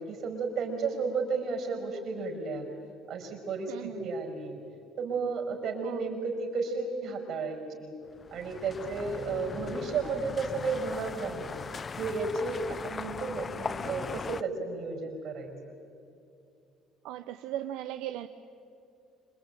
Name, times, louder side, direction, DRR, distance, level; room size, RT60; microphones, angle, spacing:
voice 1, 0.0-2.7 3.1-4.6 5.0-8.0 8.3-11.6 12.0-15.5, right 4 dB, 55° right, 3 dB, 5.6 m, -33 dB
voice 2, 3.7-4.1 5.8-6.1 17.0-18.3, right 13 dB, 85° right, 9 dB, 0.8 m, -37 dB
sound 1, 8.1-14.4, left 5 dB, 30° left, 0.6 m, -39 dB
26.5 x 21.5 x 9.0 m, 2.6 s
cardioid pair, 115°, 0 cm